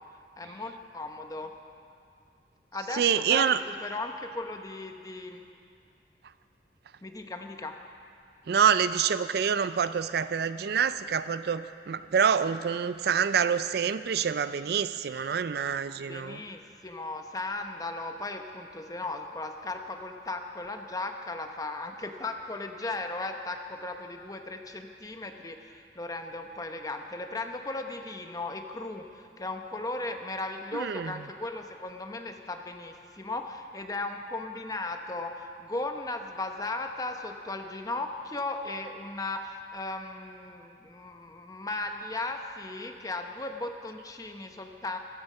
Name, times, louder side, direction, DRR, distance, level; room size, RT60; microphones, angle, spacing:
voice 1, 0.4-1.5 2.7-5.4 7.0-7.7 16.0-45.0, left 2 dB, 20° left, 5 dB, 0.9 m, -36 dB
voice 2, 2.9-3.6 8.5-16.4 30.7-31.1, right 7 dB, 60° right, 13 dB, 0.4 m, -26 dB
16.0 x 13.0 x 5.5 m, 2.4 s
head